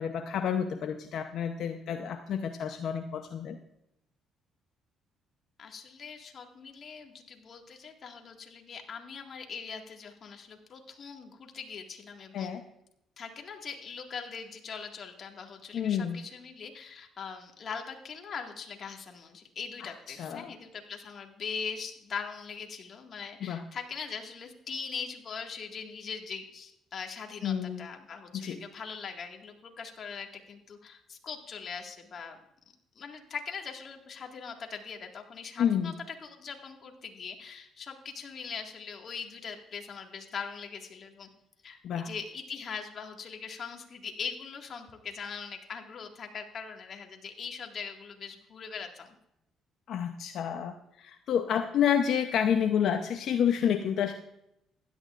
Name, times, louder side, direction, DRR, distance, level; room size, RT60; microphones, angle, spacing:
voice 1, 0.0-3.6 12.3-12.6 15.7-16.2 19.8-20.5 23.4-23.6 27.4-27.9 28.3-28.6 35.6-35.9 41.8-42.1 49.9-54.1, left 8 dB, 70° left, 6 dB, 0.7 m, -29 dB
voice 2, 5.6-12.5 13.2-32.4 32.9-35.9 36.2-41.3 41.6-49.1, left 6 dB, 50° left, 3 dB, 1.8 m, -41 dB
16.0 x 11.5 x 2.5 m, 0.81 s
cardioid pair, 85°, 0 cm